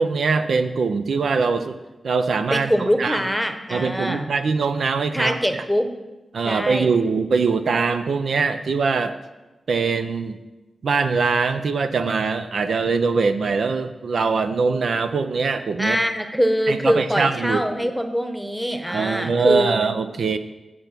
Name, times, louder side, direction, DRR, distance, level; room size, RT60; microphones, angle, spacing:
voice 1, 0.0-1.8 2.0-2.7 3.0-3.2 3.7-5.3 6.3-9.1 9.7-10.4 10.8-16.0 16.7-17.6 18.9-20.4, right 4 dB, 75° right, 10 dB, 0.5 m, -22 dB
voice 2, 2.5-4.3 5.1-5.9 6.4-6.9 15.8-19.8, equal, ahead, 7 dB, 1.0 m, -23 dB
8.6 x 6.8 x 5.9 m, 1.1 s
cardioid pair, 75°, 0 cm